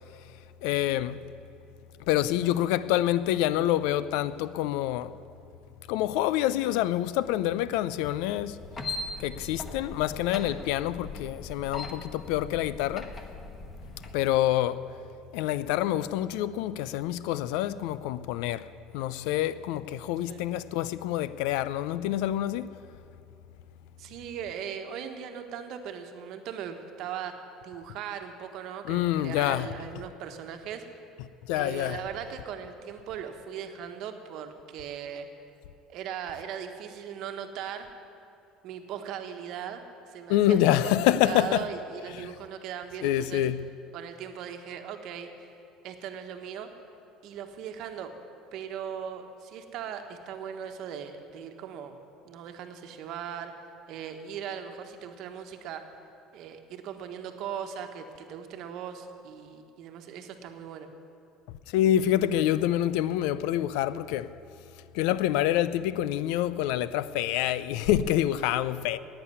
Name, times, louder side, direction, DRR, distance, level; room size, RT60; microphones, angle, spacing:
voice 1, 0.6-1.2 2.1-5.1 5.9-8.6 9.2-13.1 14.1-14.9 15.3-18.6 18.9-22.7 28.8-29.7 31.5-32.0 40.3-41.6 42.1-42.3 43.0-43.7 61.7-64.3 64.9-69.0, left 12 dB, 80° left, 0.4 m, -27 dB
sound 1, 8.6-14.1, left 2 dB, 20° left, 1.2 m, -40 dB
voice 2, 24.0-30.9 31.5-35.3 35.9-37.9 38.6-41.0 41.2-43.4 43.9-45.5 45.8-46.7 47.2-48.1 48.5-52.0 52.2-53.5 53.9-55.8 56.3-60.9, right 8 dB, 60° right, 1.3 m, -39 dB
11.0 x 8.9 x 9.6 m
cardioid pair, 140°, 0 cm